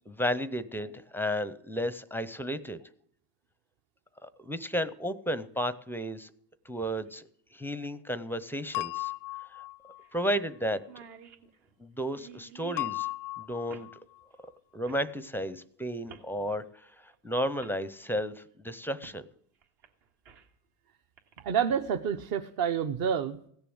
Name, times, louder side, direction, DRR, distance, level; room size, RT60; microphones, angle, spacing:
voice 1, 0.1-2.8 4.2-6.3 6.7-9.1 9.5-9.6 10.1-10.8 11.8-13.1 13.4-13.9 14.7-19.2, equal, 5° left, 15 dB, 0.5 m, -33 dB
sound 1, 7.1-7.2 8.9-9.0 9.4-9.5 10.0-10.2 10.5-10.6 10.8-13.0 13.7-13.9 14.8-15.1 16.1-16.3 17.1-17.2 17.6-17.8 19.0-19.2 19.6-20.6 21.2-21.4, right 7 dB, 65° right, 2.0 m, -51 dB
sound 2, 8.7-10.0 12.8-14.0, left 19 dB, 85° left, 0.6 m, -35 dB
voice 2, 21.4-23.5, right 7 dB, 45° right, 6 dB, 0.9 m, -28 dB
16.5 x 7.0 x 7.9 m, 0.66 s
supercardioid pair, 100°, 49 cm